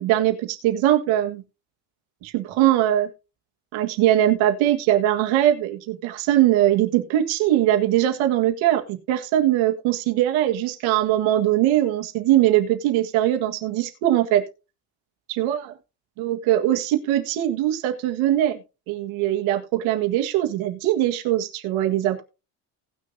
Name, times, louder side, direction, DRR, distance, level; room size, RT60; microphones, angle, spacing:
voice 1, 0.0-1.4 2.2-3.1 3.7-14.4 15.4-15.6 16.2-18.6 18.9-22.2, right 13 dB, 80° right, 4 dB, 1.7 m, -21 dB
18.0 x 6.4 x 2.7 m, 0.30 s
cardioid pair, 130°, 47 cm